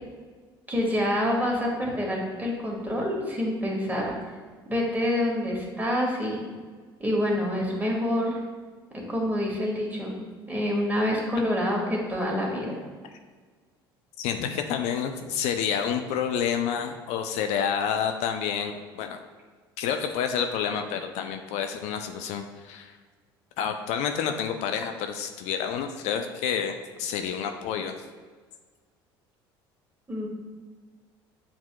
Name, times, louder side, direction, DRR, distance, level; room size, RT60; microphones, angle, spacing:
voice 1, 0.7-4.1 4.7-6.4 7.0-8.4 8.9-10.2 10.5-12.7 30.1-30.3, left 1 dB, 15° right, -2 dB, 1.5 m, -27 dB
voice 2, 14.2-19.2 19.8-23.0 23.6-28.1, left 8 dB, 60° left, 6 dB, 0.4 m, -29 dB
7.5 x 2.8 x 2.2 m, 1.5 s
hypercardioid pair, 65°, 13 cm